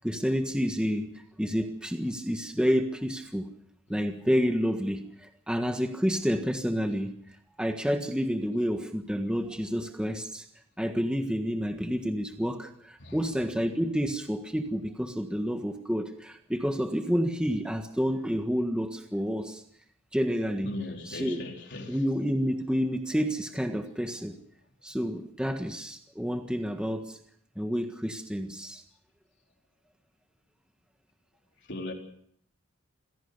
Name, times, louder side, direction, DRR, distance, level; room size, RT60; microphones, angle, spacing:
voice 1, 0.0-3.5 3.9-7.2 7.6-10.4 10.8-19.6 20.1-20.8 21.1-21.4 21.9-24.4 24.8-27.2 27.5-28.8, equal, 5° right, 1.5 m, -29 dB
voice 2, 20.6-22.0 31.7-31.9, left 2 dB, 55° left, 4.1 m, -37 dB
26.5 x 17.0 x 6.7 m
head